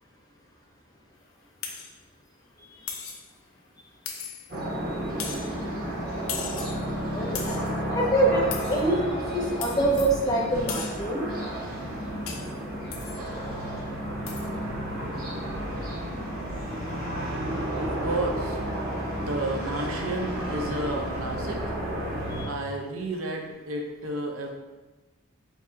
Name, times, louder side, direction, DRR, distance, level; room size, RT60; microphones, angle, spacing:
sound 1, 1.6-1.9 2.9-3.3 4.1-4.6 5.2-5.5 6.3-6.8 7.3-7.7 8.5-8.8 9.6-10.2 10.7-11.1 12.3-12.6 12.9-13.2 14.3-14.5, left 6 dB, 90° left, 0.6 m, -37 dB
sound 2, 4.5-22.5, right 1 dB, 45° right, 1.2 m, -32 dB
voice 1, 7.1-7.4 7.9-11.2 22.3-22.5, right 1 dB, 20° left, -2 dB, 0.6 m, -25 dB
voice 2, 17.8-18.6 19.2-21.6 22.4-24.5, right 1 dB, 80° right, 1 dB, 0.7 m, -31 dB
5.8 x 2.7 x 2.6 m, 1.2 s
head